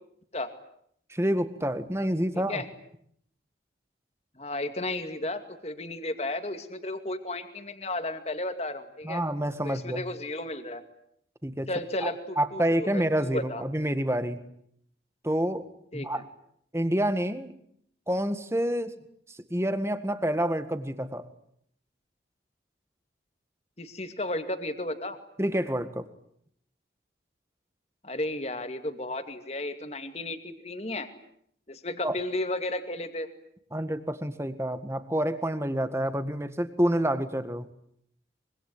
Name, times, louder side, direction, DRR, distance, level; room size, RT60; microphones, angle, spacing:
voice 1, 1.1-2.6 9.0-10.0 11.4-11.7 12.0-12.1 12.4-14.4 15.2-15.7 15.9-16.2 16.7-17.5 18.1-19.0 19.3-21.3 25.4-26.1 32.0-32.1 33.7-37.7, right 1 dB, 15° right, 10 dB, 1.8 m, -28 dB
voice 2, 4.4-9.2 9.6-10.8 11.7-13.6 15.9-16.2 23.8-25.2 28.0-31.1 31.7-33.3, left 1 dB, 35° left, 8 dB, 2.4 m, -33 dB
25.0 x 24.5 x 9.6 m, 0.70 s
head